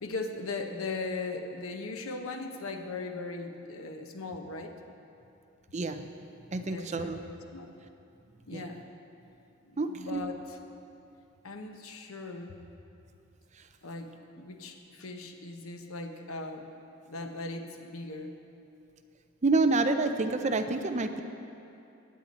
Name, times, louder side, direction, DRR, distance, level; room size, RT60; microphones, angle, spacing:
voice 1, 0.0-4.8 6.6-7.7 8.5-8.8 9.7-10.6 11.4-12.6 13.8-16.7 17.0-18.4, left 3 dB, 75° left, 5 dB, 1.0 m, -39 dB
voice 2, 5.7-6.1 6.5-7.2 8.5-8.6 9.8-10.2 19.4-21.2, right 3 dB, 35° right, 7 dB, 0.6 m, -28 dB
17.0 x 9.6 x 4.2 m, 2.7 s
head